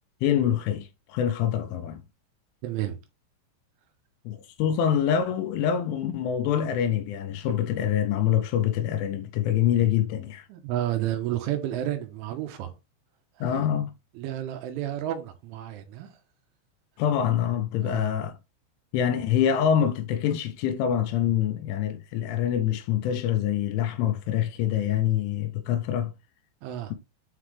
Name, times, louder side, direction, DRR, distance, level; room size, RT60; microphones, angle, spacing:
voice 1, 0.2-2.0 4.3-10.5 13.4-13.9 17.0-18.3 18.9-26.1, left 9 dB, 80° left, 2.9 m, -25 dB
voice 2, 2.6-3.0 10.5-12.7 13.4-13.7 14.1-16.2 17.8-18.1 26.6-26.9, right 12 dB, 80° right, 3.4 m, -31 dB
8.2 x 4.1 x 3.2 m
omnidirectional pair, 5.9 m